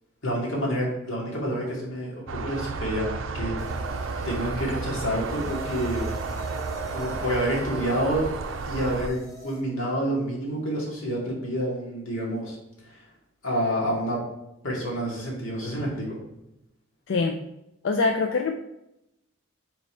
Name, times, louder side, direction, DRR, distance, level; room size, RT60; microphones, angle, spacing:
voice 1, 0.2-3.6 4.2-6.0 6.9-8.3 8.6-12.6 12.9-13.0 13.4-14.2 14.6-16.2, equal, 80° left, -3 dB, 2.2 m, -28 dB
sound 1, 2.3-9.1, right 4 dB, 70° right, 0.5 m, -32 dB
sound 2, 3.6-9.6, right 2 dB, 15° left, 0.9 m, -43 dB
voice 2, 17.1-17.4 17.8-18.5, left 4 dB, 65° left, 5 dB, 0.4 m, -24 dB
5.4 x 4.4 x 4.3 m, 0.87 s
head